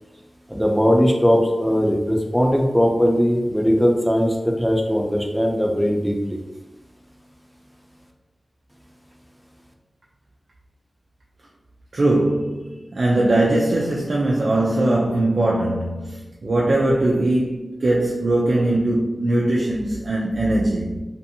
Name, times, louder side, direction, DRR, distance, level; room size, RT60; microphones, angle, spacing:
voice 1, 0.5-6.4, equal, ahead, 1 dB, 0.4 m, -19 dB
voice 2, 11.9-21.0, right 1 dB, 60° right, -4 dB, 0.3 m, -20 dB
2.6 x 2.5 x 2.6 m, 1.1 s
wide cardioid pair, 90°, 0 cm